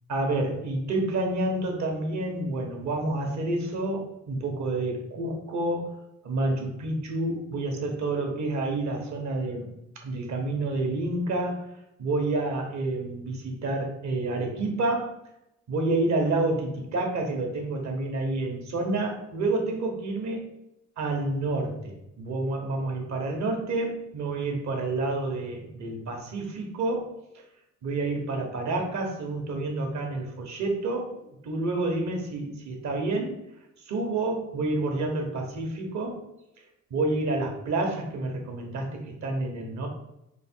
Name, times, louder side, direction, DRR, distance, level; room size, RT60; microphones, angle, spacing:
voice 1, 0.1-5.9 6.2-9.7 10.0-11.7 12.0-15.1 15.7-20.5 21.0-27.1 27.8-31.1 31.4-33.4 33.9-36.2 36.9-39.9, right 2 dB, 65° right, 2 dB, 1.2 m, -29 dB
4.6 x 2.3 x 4.4 m, 0.86 s
cardioid pair, 90°, 30 cm